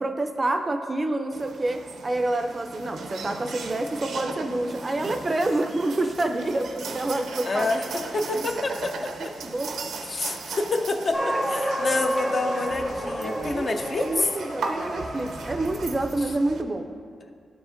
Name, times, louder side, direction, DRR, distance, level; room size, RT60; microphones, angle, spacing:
voice 1, 0.0-7.7 9.2-9.9 11.2-11.4 13.2-16.9, right 2 dB, 25° right, 7 dB, 0.4 m, -28 dB
sound 1, 1.3-16.6, right 4 dB, 80° right, 0.5 m, -37 dB
voice 2, 7.4-8.9 9.2-9.3 10.1-14.0, left 2 dB, 45° left, 5 dB, 0.5 m, -28 dB
sound 2, 11.1-15.9, equal, 10° left, 0.7 m, -30 dB
12.0 x 4.8 x 2.5 m, 2.2 s
cardioid pair, 100°, 0 cm